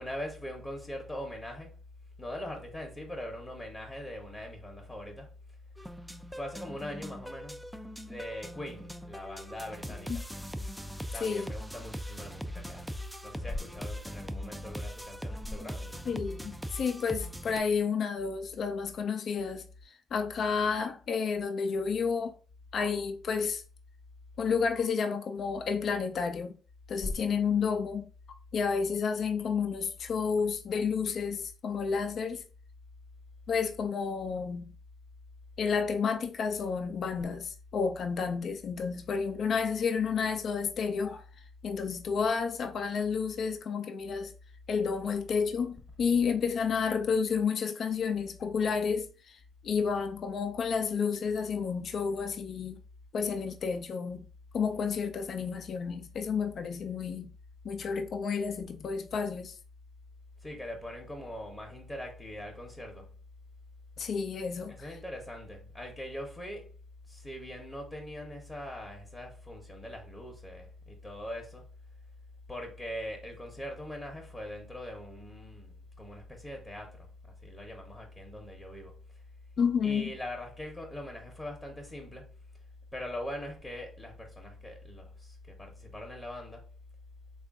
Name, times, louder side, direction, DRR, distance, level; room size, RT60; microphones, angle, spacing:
voice 1, 0.0-1.8 2.2-5.3 6.3-7.6 8.1-10.2 11.1-13.0 13.2-16.0 27.0-27.3 60.4-63.1 64.7-66.8 67.1-71.7 72.5-79.0 79.8-82.4 82.9-86.7, left 1 dB, 20° left, 0.9 m, -41 dB
sound 1, 5.8-17.6, equal, 5° right, 0.3 m, -41 dB
voice 2, 16.1-19.7 20.1-22.4 22.7-23.6 24.4-26.6 26.9-28.1 28.5-32.4 33.5-34.7 35.6-41.2 41.6-44.3 44.7-49.4 49.6-52.8 53.1-54.3 54.5-57.3 57.6-59.5 64.0-64.7 79.6-80.1, left 6 dB, 60° left, 0.5 m, -31 dB
3.4 x 2.4 x 3.6 m
cardioid pair, 90°, 0 cm